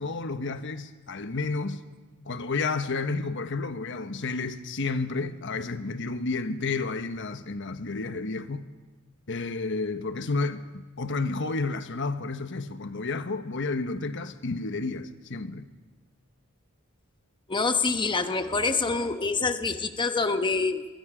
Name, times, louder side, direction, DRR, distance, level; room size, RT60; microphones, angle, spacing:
voice 1, 0.0-1.8 2.3-8.6 9.3-15.7, left 3 dB, 60° left, 1.2 m, -31 dB
voice 2, 17.5-20.9, left 4 dB, 20° left, 1.0 m, -26 dB
23.0 x 23.0 x 5.0 m
head